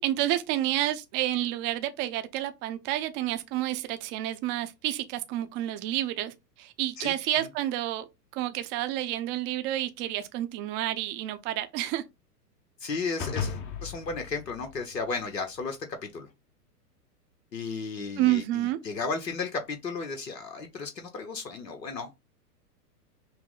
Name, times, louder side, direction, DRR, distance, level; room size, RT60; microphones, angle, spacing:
voice 1, 0.0-8.0 8.3-12.0 18.2-18.8, right 14 dB, 25° right, 0.5 m, -29 dB
voice 2, 12.8-16.3 17.5-22.2, left 4 dB, 90° left, 1.1 m, -34 dB
sound 1, 13.2-15.7, left 6 dB, 25° left, 0.7 m, -36 dB
5.7 x 2.1 x 3.8 m
hypercardioid pair, 115°, 48 cm